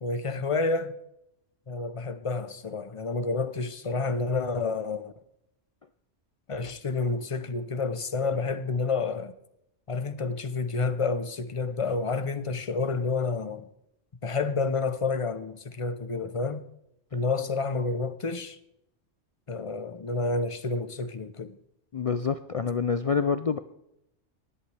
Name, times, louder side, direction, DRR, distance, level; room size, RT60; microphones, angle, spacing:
voice 1, 0.0-0.9 1.7-5.1 6.5-9.3 9.9-13.7 14.2-16.6 17.1-18.6 19.5-21.6, left 4 dB, 30° left, 0.7 m, -29 dB
voice 2, 21.9-23.6, left 5 dB, 60° left, 0.3 m, -27 dB
19.0 x 8.2 x 3.4 m
omnidirectional pair, 1.2 m